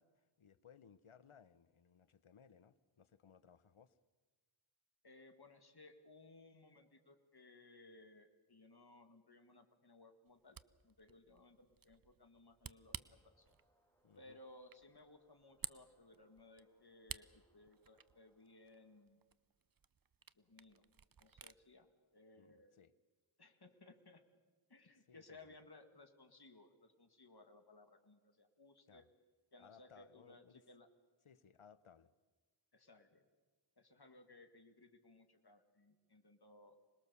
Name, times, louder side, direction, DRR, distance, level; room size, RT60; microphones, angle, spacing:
voice 1, 0.0-3.9 14.0-14.4 22.4-22.9 25.1-25.5 28.9-29.0 29.6-30.6 31.2-32.1, left 7 dB, 90° left, 0.9 m, -64 dB
voice 2, 5.0-10.6 10.8-13.6 14.1-19.2 20.3-20.8 21.2-21.9 22.1-22.8 23.4-24.2 24.7-29.1 29.5-30.9 32.7-33.3 33.8-36.8, left 2 dB, 50° left, 2.0 m, -62 dB
Camera, 10.3-21.6, right 6 dB, 45° right, 0.6 m, -55 dB
sound 1, 12.9-19.1, equal, 5° left, 3.0 m, -80 dB
26.0 x 21.0 x 6.9 m
wide cardioid pair, 40°, 48 cm